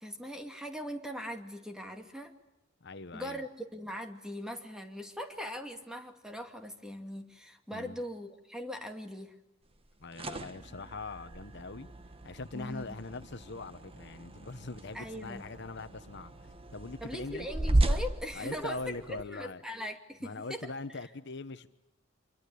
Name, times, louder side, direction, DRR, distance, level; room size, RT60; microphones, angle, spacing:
voice 1, 0.0-2.3 3.1-9.4 12.5-13.0 14.9-15.4 17.0-18.8 19.1-20.6, equal, 5° right, 5 dB, 2.4 m, -40 dB
voice 2, 2.8-3.4 7.7-8.0 10.0-11.9 12.2-17.5 18.3-19.6 20.2-21.7, left 3 dB, 60° left, 11 dB, 1.1 m, -42 dB
sound 1, 9.9-19.2, right 1 dB, 30° right, 1.4 m, -35 dB
26.5 x 23.5 x 8.5 m, 0.90 s
head